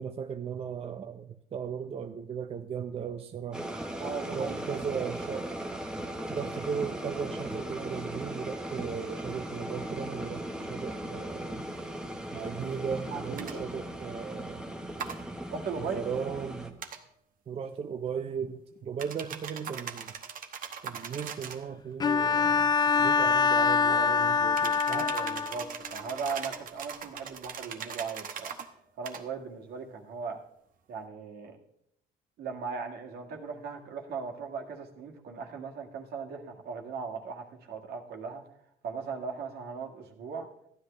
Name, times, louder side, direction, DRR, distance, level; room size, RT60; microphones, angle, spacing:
voice 1, 0.0-3.6 4.3-5.5 6.3-11.7 12.3-14.6 15.8-16.8 17.5-20.1 20.8-25.1, right 7 dB, 35° right, 0.5 m, -37 dB
sound 1, 3.5-16.7, right 1 dB, 5° right, 1.0 m, -38 dB
voice 2, 4.0-4.6 13.1-13.6 15.4-16.0 23.9-24.3 24.9-28.5 29.0-30.4 30.9-31.6 32.4-38.4 38.8-40.5, right 5 dB, 70° right, 1.7 m, -38 dB
sound 2, 13.4-13.6 15.0-15.2 16.8-17.0 19.0-21.7 24.5-28.7 29.1-29.2, right 7 dB, 55° right, 1.1 m, -40 dB
Bowed string instrument, 22.0-25.7, left 5 dB, 25° left, 0.3 m, -24 dB
14.0 x 10.0 x 3.3 m
cardioid pair, 110°, 17 cm